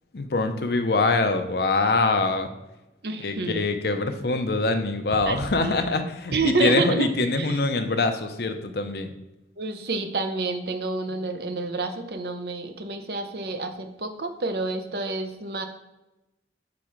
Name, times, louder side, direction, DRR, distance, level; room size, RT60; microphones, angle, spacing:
voice 1, 0.1-2.5 3.2-9.1, left 3 dB, 60° left, 7 dB, 0.6 m, -24 dB
voice 2, 3.0-3.7 5.2-5.8 6.3-7.1 7.3-7.6 9.6-15.6, right 3 dB, 60° right, 7 dB, 0.8 m, -28 dB
5.8 x 4.2 x 5.0 m, 0.99 s
head